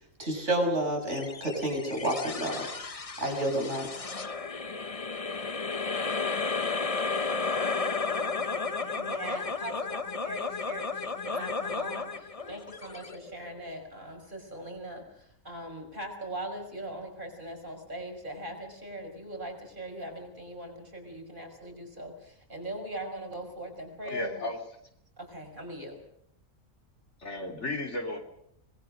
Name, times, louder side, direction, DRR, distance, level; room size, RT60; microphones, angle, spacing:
voice 1, 0.2-2.7 3.2-3.9, right 1 dB, 60° right, 1 dB, 6.9 m, -29 dB
sound 1, 1.1-13.7, left 4 dB, 30° left, 1.1 m, -33 dB
voice 2, 8.9-24.5 25.2-26.0, right 1 dB, 40° right, 4 dB, 5.9 m, -40 dB
voice 3, 24.0-24.6 27.2-28.2, left 2 dB, 60° left, 3 dB, 3.6 m, -34 dB
25.5 x 21.0 x 6.5 m, 0.72 s
omnidirectional pair, 1.4 m